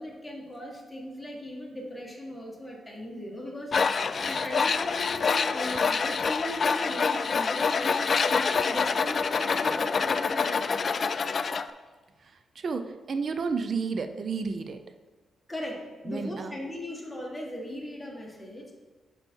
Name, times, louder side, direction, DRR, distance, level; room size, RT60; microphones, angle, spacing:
voice 1, 0.0-10.9 15.5-18.6, left 1 dB, 5° left, -3 dB, 1.8 m, -38 dB
Tools, 3.7-11.6, left 5 dB, 50° left, 0.3 m, -26 dB
voice 2, 12.2-14.8 16.1-16.6, right 5 dB, 55° right, 9 dB, 0.6 m, -32 dB
5.9 x 5.2 x 4.6 m, 1.3 s
cardioid pair, 65°, 0 cm